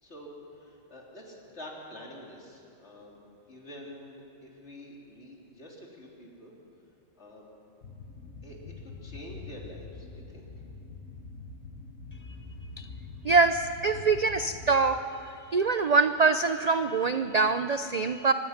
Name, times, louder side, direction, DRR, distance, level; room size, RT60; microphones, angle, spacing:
voice 1, 0.0-6.6 7.2-7.5 8.4-8.6 8.8-10.5, left 1 dB, 55° left, -2 dB, 3.8 m, -47 dB
sound 1, 7.8-14.9, left 3 dB, 70° left, 1.7 m, -44 dB
voice 2, 13.2-18.3, right 4 dB, 55° right, 10 dB, 0.4 m, -24 dB
25.0 x 21.5 x 5.9 m, 2.6 s
omnidirectional pair, 1.4 m